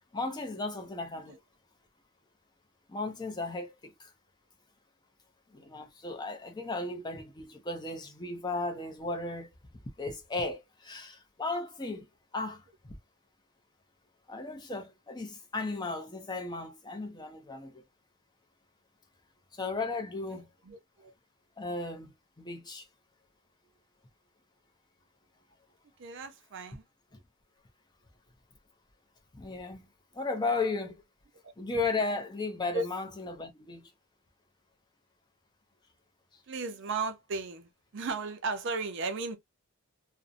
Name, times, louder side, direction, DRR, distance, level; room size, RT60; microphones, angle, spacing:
voice 1, 0.1-1.4 2.9-4.1 5.5-9.5 10.0-12.1 12.3-13.0 14.3-17.8 19.5-20.5 21.6-22.9 29.3-29.9 30.1-31.0 31.6-33.9, left 3 dB, 20° left, 0.4 m, -35 dB
voice 2, 20.7-21.1 26.0-26.8 32.7-32.9 36.5-39.4, right 3 dB, 55° right, 0.4 m, -35 dB
2.5 x 2.0 x 2.4 m
head